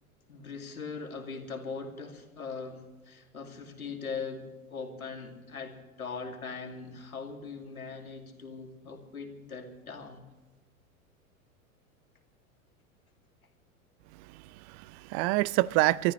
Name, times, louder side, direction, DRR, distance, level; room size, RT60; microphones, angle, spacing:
voice 1, 0.3-10.2, left 5 dB, 85° left, 2.5 m, -40 dB
voice 2, 14.1-16.1, right 20 dB, 35° right, 0.5 m, -27 dB
28.0 x 14.0 x 3.2 m
figure-of-eight pair, 90°, 42 cm